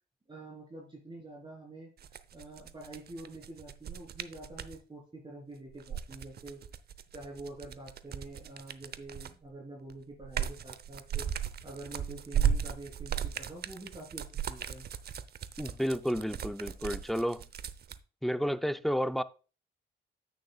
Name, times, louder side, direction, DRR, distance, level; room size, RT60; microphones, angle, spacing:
voice 1, 0.3-1.9 2.3-6.6 7.1-11.3 11.6-14.9, right 2 dB, 25° right, 3.5 m, -46 dB
sound 1, 2.0-4.8 5.7-9.5 9.9-18.0, right 8 dB, 55° right, 0.7 m, -36 dB
voice 2, 15.6-17.5 18.2-19.2, equal, ahead, 0.5 m, -31 dB
9.8 x 8.7 x 2.3 m
cardioid pair, 90°, 20 cm